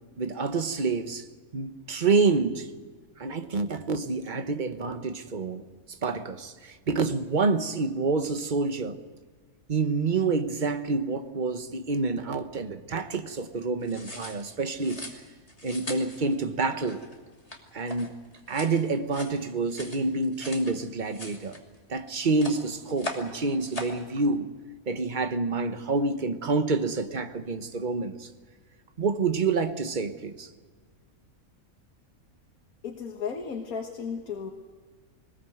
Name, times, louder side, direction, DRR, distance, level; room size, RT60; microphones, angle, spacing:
voice 1, 0.2-1.2 1.5-2.7 3.2-5.6 6.0-9.0 9.7-15.0 15.6-17.0 17.7-18.1 18.5-21.6 21.9-24.5 24.9-28.3 29.0-30.5, right 4 dB, 35° right, 1.3 m, -28 dB
sound 1, 13.8-20.7 21.0-22.0 22.2-23.3 23.6-24.0, left 1 dB, 25° left, 2.9 m, -40 dB
voice 2, 32.8-34.5, left 6 dB, 80° left, 2.0 m, -34 dB
22.5 x 20.5 x 8.0 m
omnidirectional pair, 1.5 m